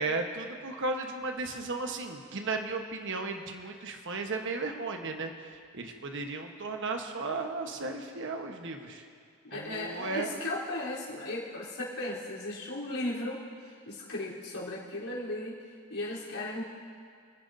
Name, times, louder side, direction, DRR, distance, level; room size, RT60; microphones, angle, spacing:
voice 1, 0.0-9.0 9.5-10.3, right 3 dB, 60° right, 4 dB, 1.1 m, -35 dB
voice 2, 9.5-16.6, left 2 dB, 85° left, -7 dB, 3.6 m, -36 dB
26.5 x 10.0 x 2.7 m, 2.2 s
head